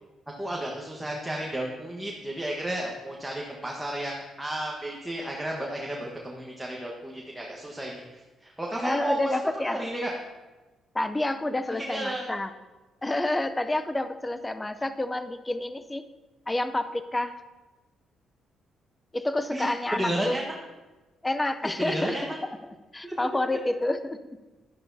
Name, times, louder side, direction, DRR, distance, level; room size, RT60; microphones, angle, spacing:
voice 1, 0.4-9.4 9.6-10.1 11.8-12.3 19.5-20.4 21.6-22.2 23.0-23.1, right 1 dB, 5° right, -2 dB, 1.4 m, -33 dB
voice 2, 8.8-9.8 10.9-12.5 13.0-16.1 16.5-17.4 19.1-20.4 21.2-22.3 22.6-24.2, left 1 dB, 15° left, 11 dB, 0.5 m, -29 dB
12.0 x 10.5 x 2.8 m, 1.2 s
cardioid pair, 90°, 0 cm